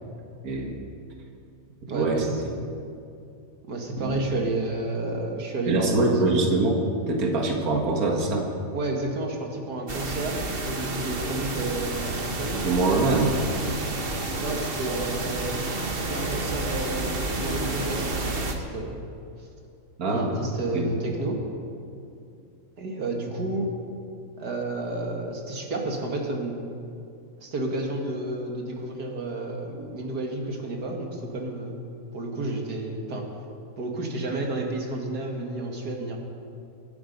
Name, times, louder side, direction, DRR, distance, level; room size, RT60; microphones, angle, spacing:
voice 1, 0.4-0.8 1.9-2.2 4.0-4.2 5.7-6.8 7.1-8.5 12.6-13.4 20.0-20.4 20.7-20.9, right 2 dB, 65° right, 0 dB, 2.2 m, -23 dB
voice 2, 1.9-2.3 3.7-6.1 8.7-12.7 14.4-15.6 15.9-19.0 19.4-19.5 20.1-21.4 22.8-23.7 24.4-26.6 27.4-31.8 32.1-33.3 33.8-36.2, right 2 dB, 90° right, 1 dB, 2.6 m, -31 dB
sound 1, 9.9-18.5, right 2 dB, 40° right, 1.4 m, -30 dB
24.0 x 9.5 x 5.4 m, 2.5 s
omnidirectional pair, 1.7 m